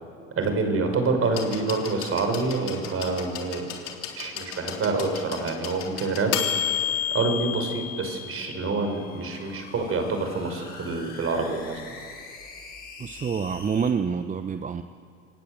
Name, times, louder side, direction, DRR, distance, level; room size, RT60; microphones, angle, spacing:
voice 1, 0.4-3.7 4.2-6.4 7.1-11.8, right 3 dB, 35° right, 5 dB, 5.6 m, -27 dB
sound 1, 1.3-9.1 10.2-10.3, left 10 dB, 65° left, 3.8 m, -32 dB
sound 2, 8.5-13.9, left 4 dB, 25° left, 6.9 m, -44 dB
voice 2, 13.0-14.8, right 6 dB, 20° right, 10 dB, 0.9 m, -27 dB
28.0 x 18.5 x 8.1 m, 2.5 s
hypercardioid pair, 75°, 38 cm